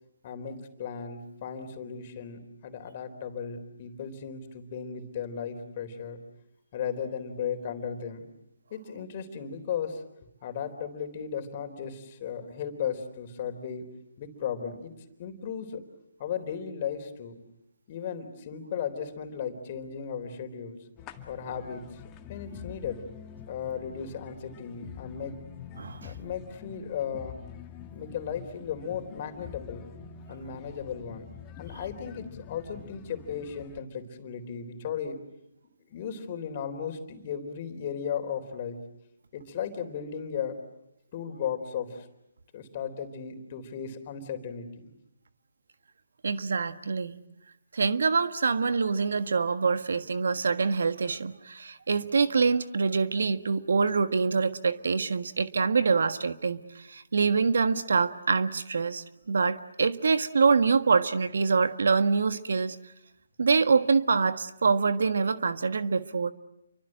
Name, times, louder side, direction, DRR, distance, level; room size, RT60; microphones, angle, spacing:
voice 1, 0.2-6.2 6.7-8.3 8.7-10.0 10.4-13.9 14.2-14.9 15.2-15.8 16.2-17.3 17.9-20.8 21.3-22.0 22.3-23.0 23.5-25.4 26.0-27.4 27.9-29.8 30.3-31.3 31.6-35.2 35.9-38.8 39.3-40.6 41.1-42.1 42.5-44.9, left 7 dB, 35° left, 7 dB, 3.9 m, -36 dB
sound 1, 21.0-33.8, left 8 dB, 20° left, 2.0 m, -46 dB
voice 2, 25.8-26.1 46.2-47.1 47.7-62.8 63.4-66.3, right 5 dB, 65° right, 11 dB, 1.5 m, -25 dB
29.5 x 24.5 x 7.7 m, 0.83 s
figure-of-eight pair, 145°, 0 cm